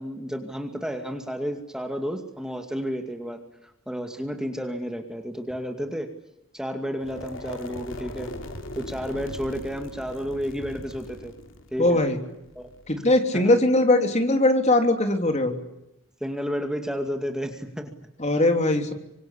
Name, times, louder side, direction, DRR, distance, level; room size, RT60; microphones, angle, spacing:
voice 1, 0.0-6.1 6.5-8.3 8.8-11.3 11.7-12.0 12.6-12.7 13.3-13.5 16.2-18.1, equal, 5° right, 5 dB, 2.3 m, -31 dB
sound 1, 7.0-13.0, left 1 dB, 75° left, 3.0 m, -40 dB
voice 2, 11.8-12.2 12.9-15.6 18.2-18.9, left 2 dB, 35° left, 5 dB, 3.3 m, -20 dB
26.5 x 25.5 x 8.5 m, 0.85 s
head